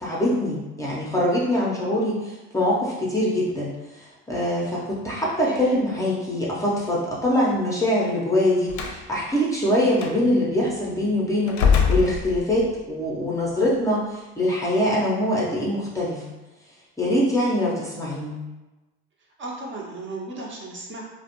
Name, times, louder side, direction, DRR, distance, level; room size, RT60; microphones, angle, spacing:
voice 1, 0.0-11.6 11.9-16.2 17.0-18.4, left 1 dB, 10° left, -6 dB, 0.5 m, -23 dB
voice 2, 5.4-5.8 19.4-21.0, right 3 dB, 35° right, -2 dB, 0.7 m, -35 dB
Slam, 8.7-9.0 10.0-10.1 11.5-12.8, left 6 dB, 60° left, 0.5 m, -22 dB
2.4 x 2.1 x 2.8 m, 1.1 s
supercardioid pair, 85°, 32 cm